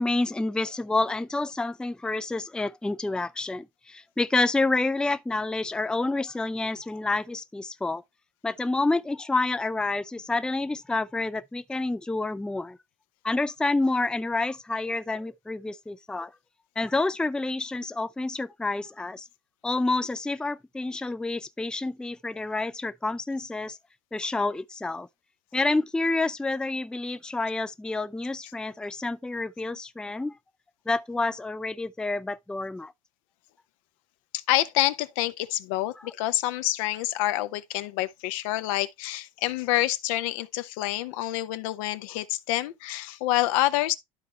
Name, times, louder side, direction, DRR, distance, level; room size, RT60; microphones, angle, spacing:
voice 1, 0.0-8.0 8.4-12.8 13.2-16.3 16.8-19.3 19.6-23.8 24.1-25.1 25.5-30.4 30.9-32.9 36.0-36.1, left 2 dB, 5° left, 0.4 m, -28 dB
voice 2, 34.3-43.9, left 15 dB, 70° left, 0.7 m, -27 dB
12.5 x 4.3 x 3.0 m
hypercardioid pair, 75°, 17 cm